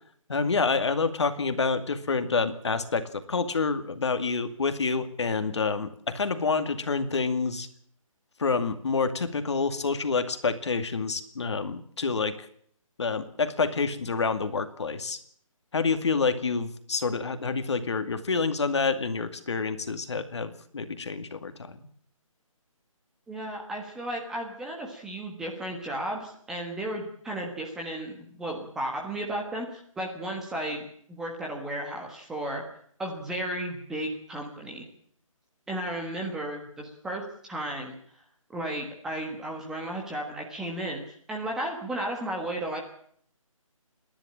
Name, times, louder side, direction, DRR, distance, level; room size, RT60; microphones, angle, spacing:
voice 1, 0.3-7.7 8.4-12.5 13.0-15.2 15.7-21.9, left 4 dB, 50° left, 9 dB, 2.3 m, -28 dB
voice 2, 23.3-32.6 33.0-34.9 35.7-37.9 38.5-42.8, right 1 dB, 5° right, 0 dB, 1.4 m, -34 dB
28.0 x 11.0 x 8.8 m, 0.63 s
hypercardioid pair, 170°, 18 cm